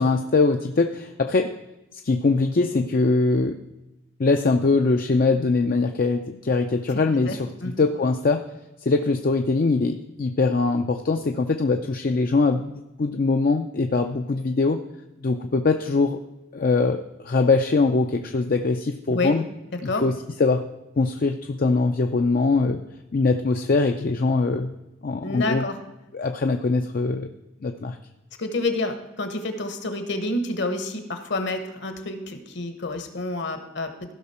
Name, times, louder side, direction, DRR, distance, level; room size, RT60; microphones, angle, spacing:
voice 1, 0.0-1.5 2.0-3.6 4.2-8.4 8.8-14.8 15.2-16.2 16.5-19.4 19.8-20.6 21.0-22.8 23.1-24.7 25.0-25.6 26.1-27.3 27.6-28.0, left 3 dB, 45° left, 5 dB, 0.4 m, -22 dB
voice 2, 7.3-7.7 19.1-19.3 19.8-20.0 25.2-25.8 28.4-34.1, left 2 dB, 60° left, 8 dB, 1.1 m, -28 dB
15.5 x 5.9 x 4.3 m, 0.96 s
head